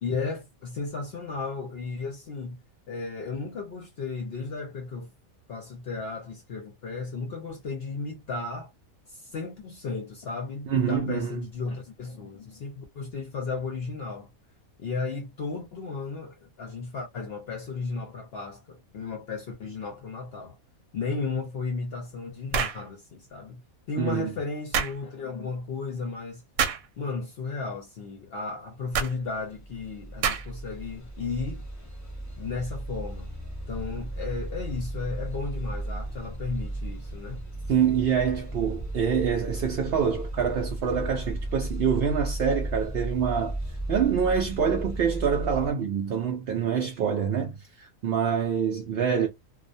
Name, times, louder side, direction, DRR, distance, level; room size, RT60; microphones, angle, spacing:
voice 1, 0.0-2.6 2.9-5.1 5.5-8.7 9.1-14.3 14.8-20.5 20.9-23.6 23.9-26.4 27.0-31.6 32.4-33.3 33.7-37.4, left 4 dB, 55° left, 0.7 m, -34 dB
voice 2, 10.7-11.4 24.0-24.3 37.7-43.6 43.9-49.3, right 7 dB, 65° right, 0.6 m, -26 dB
sound 1, 22.5-22.8 24.7-25.0 26.6-26.9 28.9-29.1 30.2-30.6, right 7 dB, 85° right, 1.0 m, -26 dB
sound 2, 29.2-45.7, right 1 dB, 20° left, 0.4 m, -35 dB
2.4 x 2.1 x 2.5 m
omnidirectional pair, 1.5 m